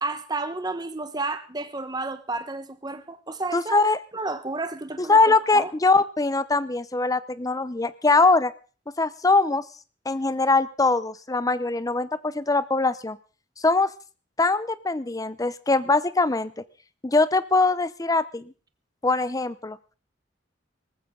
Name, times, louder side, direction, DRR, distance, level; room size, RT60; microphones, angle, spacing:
voice 1, 0.0-3.9 4.1-5.7, right 3 dB, 20° right, 1.3 m, -31 dB
voice 2, 3.5-4.0 5.1-8.5 9.0-9.6 10.1-13.2 13.6-13.9 14.4-16.5 17.0-18.5 19.0-19.8, left 3 dB, 20° left, 0.7 m, -22 dB
19.0 x 15.0 x 3.9 m
head